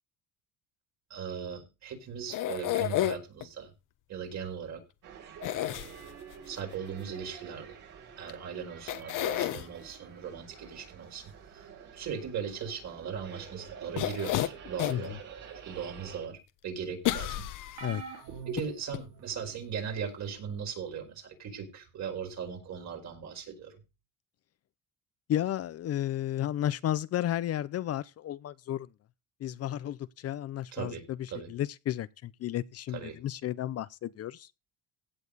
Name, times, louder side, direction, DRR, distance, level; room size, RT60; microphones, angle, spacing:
voice 1, 1.1-3.7 4.1-4.8 5.7-6.1 6.4-7.8 8.2-15.2 15.7-16.4 16.6-17.5 18.4-23.8 30.7-31.5 32.9-33.1, right 7 dB, 55° right, 5.0 m, -38 dB
sound 1, 2.3-3.4 5.4-6.3 8.3-8.4 8.9-9.7 13.9-15.1 15.6-15.7 17.0-18.0 18.6-18.7 18.9-19.0, left 13 dB, 70° left, 1.3 m, -31 dB
sound 2, 5.0-16.3, right 7 dB, 70° right, 7.3 m, -48 dB
sound 3, 17.8-19.6 20.3-20.6 21.9-22.0, right 5 dB, 90° right, 4.5 m, -45 dB
voice 2, 25.3-28.9 29.4-34.5, left 12 dB, 50° left, 0.7 m, -33 dB
16.5 x 7.2 x 4.1 m
cardioid pair, 135°, 33 cm